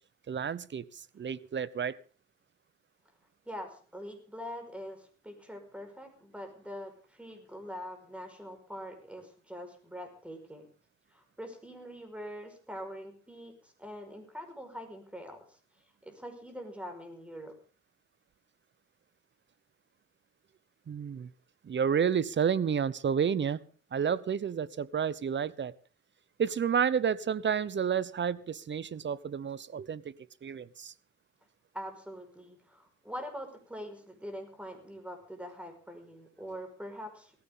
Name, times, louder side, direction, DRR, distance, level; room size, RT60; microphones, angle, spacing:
voice 1, 0.3-0.8 1.2-2.0 20.9-21.3 21.6-23.6 23.9-25.7 26.4-30.2 30.4-30.9, right 7 dB, 40° right, 19 dB, 0.8 m, -30 dB
voice 2, 3.5-10.7 11.1-15.6 16.0-17.5 31.7-37.3, equal, 5° right, 6 dB, 5.2 m, -44 dB
18.5 x 15.5 x 3.8 m, 0.40 s
cardioid pair, 90°, 30 cm